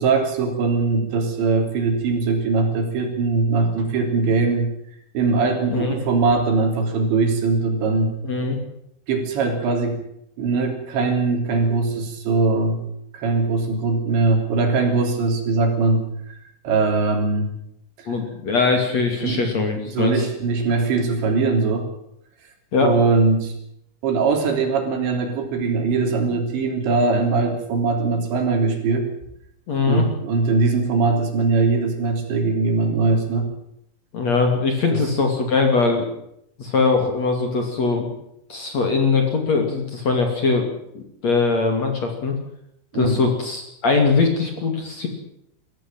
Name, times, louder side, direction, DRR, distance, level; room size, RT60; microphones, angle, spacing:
voice 1, 0.0-4.7 5.1-8.2 9.1-10.0 10.4-12.8 13.1-16.4 16.6-17.5 19.2-19.5 19.9-21.9 22.8-23.5 24.0-29.1 29.9-33.5 34.9-35.0 42.9-43.2, right 3 dB, 70° right, 4 dB, 5.6 m, -21 dB
voice 2, 8.2-8.6 18.1-20.3 22.7-22.9 29.7-30.0 34.1-36.1 36.6-38.1 38.5-40.7 40.9-42.3 42.9-45.1, left 4 dB, 40° left, 3 dB, 3.3 m, -21 dB
22.5 x 15.5 x 9.0 m, 0.76 s
omnidirectional pair, 5.5 m